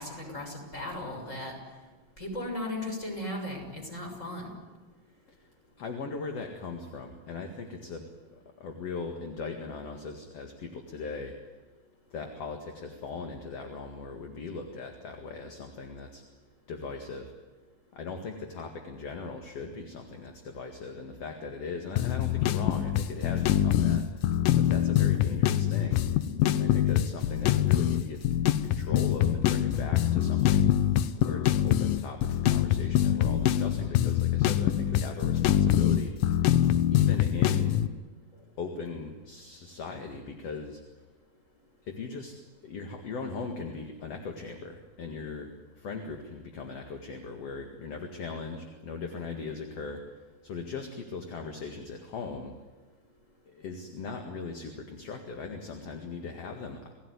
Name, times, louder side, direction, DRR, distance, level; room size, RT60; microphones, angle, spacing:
voice 1, 0.0-1.5 2.2-4.5, left 1 dB, 20° left, 2 dB, 6.8 m, -36 dB
voice 2, 5.8-8.1 8.6-11.3 12.1-16.2 16.7-17.3 17.9-24.0 24.6-26.0 26.5-28.2 28.6-30.9 31.2-36.1 36.9-37.8 38.6-40.8 41.9-42.3 42.6-45.5 45.8-50.0 50.4-52.5 53.5-56.9, left 4 dB, 50° left, 4 dB, 2.6 m, -39 dB
sound 1, 22.0-37.9, left 11 dB, 75° left, 2.5 m, -24 dB
29.0 x 18.0 x 9.7 m, 1.3 s
omnidirectional pair, 4.3 m